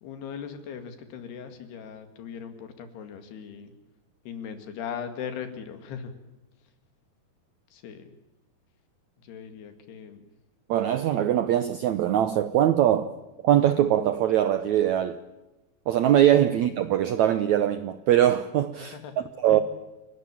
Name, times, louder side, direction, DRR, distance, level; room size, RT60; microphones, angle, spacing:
voice 1, 0.0-3.7 4.3-6.1 7.7-8.1 9.2-10.3 16.5-16.6 18.9-19.6, left 7 dB, 85° left, 4.3 m, -39 dB
voice 2, 10.7-13.1 13.4-15.2 15.9-19.0 19.4-19.6, right 11 dB, 80° right, 1.6 m, -22 dB
30.0 x 12.0 x 8.8 m
omnidirectional pair, 4.5 m